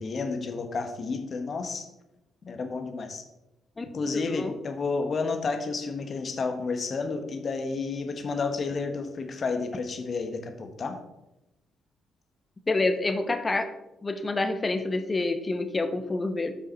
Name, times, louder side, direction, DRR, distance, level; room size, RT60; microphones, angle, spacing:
voice 1, 0.0-1.9 2.4-3.2 3.9-11.0, left 4 dB, 50° left, 6 dB, 1.2 m, -31 dB
voice 2, 4.1-4.5 12.7-13.7 14.0-16.5, left 2 dB, 30° left, 8 dB, 1.0 m, -27 dB
7.8 x 6.3 x 4.2 m, 0.95 s
hypercardioid pair, 45°, 0 cm